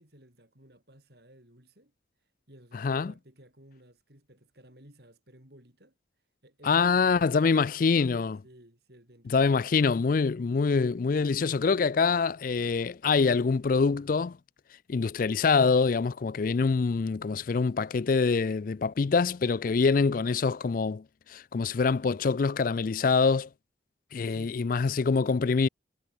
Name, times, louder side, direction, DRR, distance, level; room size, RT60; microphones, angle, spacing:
voice 1, 0.0-1.9 2.5-6.0 6.4-8.2 8.4-9.6 24.2-25.0, right 1 dB, 55° right, 6.6 m, -55 dB
voice 2, 2.8-3.1 6.6-8.4 9.3-14.4 14.9-21.0 21.3-23.5 24.1-25.7, left 4 dB, 45° left, 0.4 m, -25 dB
head